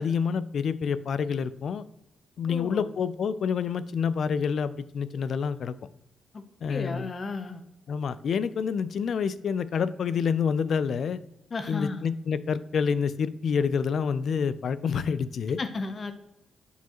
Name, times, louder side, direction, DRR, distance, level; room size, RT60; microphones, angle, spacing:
voice 1, 0.0-1.8 2.4-5.7 6.6-7.1 7.9-11.2 11.7-15.6, left 6 dB, 60° left, 15 dB, 0.3 m, -28 dB
voice 2, 2.5-2.9 6.3-6.4 6.7-7.6 11.5-12.0 15.6-16.1, left 3 dB, 35° left, 9 dB, 0.7 m, -33 dB
8.1 x 4.7 x 2.9 m, 0.87 s
cardioid pair, 120°, 0 cm